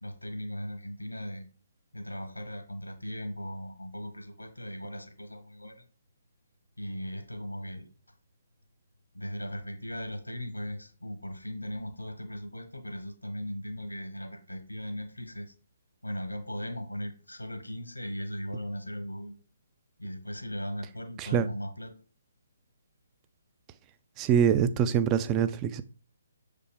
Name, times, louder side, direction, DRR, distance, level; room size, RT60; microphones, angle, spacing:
voice 1, 0.0-1.4 1.9-5.9 6.8-7.9 9.1-15.5 16.0-19.4 20.0-21.9, equal, 85° left, 1.2 m, -38 dB
voice 2, 24.2-25.8, right 8 dB, 20° right, 0.4 m, -24 dB
6.5 x 5.0 x 3.4 m
figure-of-eight pair, 135°, 0 cm